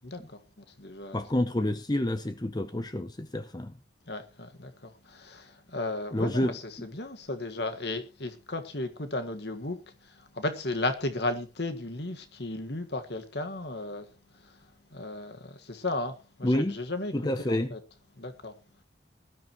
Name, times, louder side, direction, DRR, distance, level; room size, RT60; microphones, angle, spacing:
voice 1, 0.0-1.2 4.1-14.1 14.4-14.6 14.9-17.8 18.2-18.5, left 2 dB, 60° left, 1.7 m, -35 dB
voice 2, 1.1-3.8 6.1-6.5 16.4-16.8 17.1-17.7, left 1 dB, 20° left, 0.7 m, -28 dB
19.5 x 12.5 x 3.0 m
head